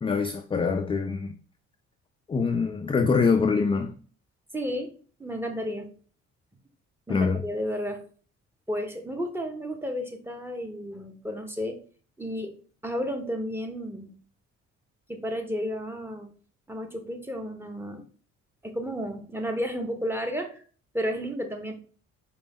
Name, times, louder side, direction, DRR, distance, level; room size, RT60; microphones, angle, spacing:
voice 1, 0.0-1.3 2.3-4.0 7.1-7.4, left 5 dB, 20° left, 0.3 m, -24 dB
voice 2, 4.5-4.9 5.2-5.9 7.1-8.0 8.7-11.8 12.2-12.6 12.8-14.1 15.1-16.3 16.7-18.0 18.6-20.6 20.9-21.7, equal, 10° right, 0.8 m, -32 dB
5.1 x 2.2 x 3.5 m
cardioid pair, 90°, 30 cm